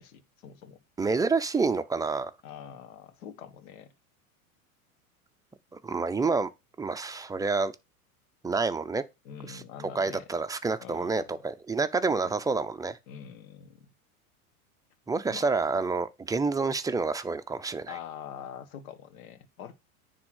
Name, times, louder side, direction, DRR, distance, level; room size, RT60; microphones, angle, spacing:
voice 1, 0.0-0.8 2.4-3.9 9.2-10.3 10.8-11.3 13.1-13.9 15.3-15.5 17.9-19.7, left 8 dB, 70° left, 1.7 m, -44 dB
voice 2, 1.0-2.3 5.7-6.5 6.8-7.7 8.4-9.0 9.5-9.6 9.9-13.0 15.1-17.9, right 4 dB, 10° right, 0.5 m, -28 dB
9.7 x 3.6 x 6.2 m
hypercardioid pair, 100°, 44 cm